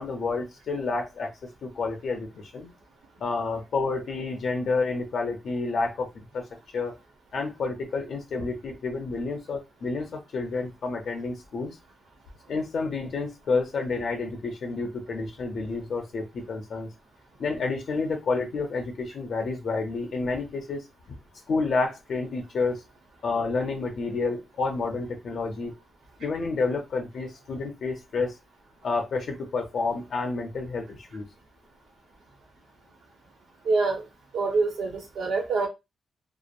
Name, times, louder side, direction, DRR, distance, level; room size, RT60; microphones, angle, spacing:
voice 1, 0.0-1.3 1.6-2.7 3.2-6.4 6.7-6.9 7.3-11.8 12.5-16.9 17.4-20.8 21.5-22.8 23.2-25.7 26.2-28.4 28.8-31.3, left 3 dB, 60° left, 0.6 m, -29 dB
voice 2, 33.6-34.1 34.3-35.7, right 3 dB, 90° right, 0.9 m, -25 dB
2.9 x 2.0 x 2.5 m
wide cardioid pair, 145°, 0 cm